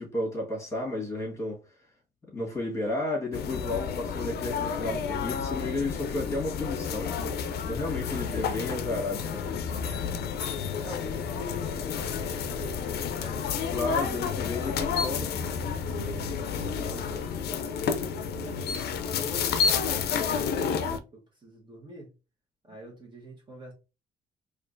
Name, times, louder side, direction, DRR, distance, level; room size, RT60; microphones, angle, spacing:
voice 1, 0.0-1.6 2.3-7.1 7.6-9.8 13.7-15.5, left 2 dB, 15° left, 1.5 m, -32 dB
sound 1, 3.3-21.0, left 6 dB, 75° left, 0.5 m, -30 dB
voice 2, 10.0-10.3 10.8-13.5 16.0-17.7 18.4-22.1 22.7-23.7, equal, 30° right, 1.1 m, -45 dB
4.3 x 2.4 x 2.6 m
cardioid pair, 120°, 17 cm